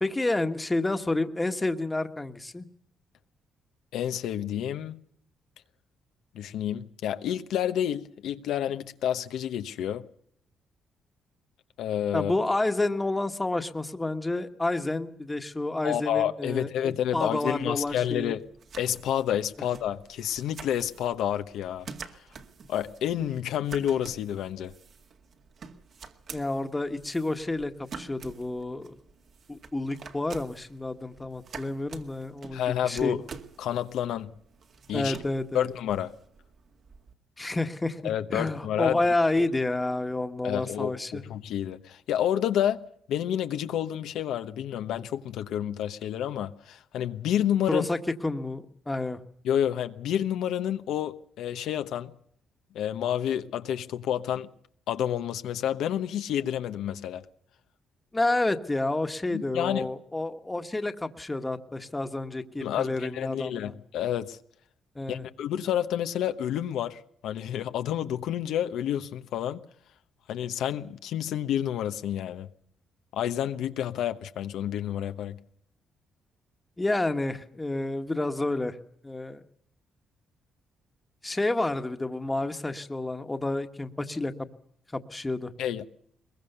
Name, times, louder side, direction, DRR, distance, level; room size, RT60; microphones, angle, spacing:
voice 1, 0.0-2.6 12.1-18.3 26.3-29.0 29.5-33.1 34.9-35.7 37.4-41.2 47.7-49.2 58.1-63.7 64.9-65.3 76.8-78.8 79.0-79.4 81.2-84.3 84.9-85.5, left 2 dB, 15° left, 1.5 m, -29 dB
voice 2, 3.9-5.0 6.3-10.0 11.8-12.3 15.8-18.4 18.8-21.9 22.7-24.7 32.5-33.2 33.6-34.3 34.9-35.2 35.5-36.1 38.0-39.0 40.4-42.8 43.1-47.9 49.4-52.1 52.7-54.5 54.9-57.2 59.3-59.9 62.6-64.4 65.1-69.6 70.3-72.5 73.1-75.4 85.6-85.9, left 10 dB, 80° left, 1.0 m, -29 dB
sound 1, 17.5-37.1, right 5 dB, 55° right, 2.1 m, -48 dB
22.0 x 21.5 x 6.8 m
cardioid pair, 115°, 0 cm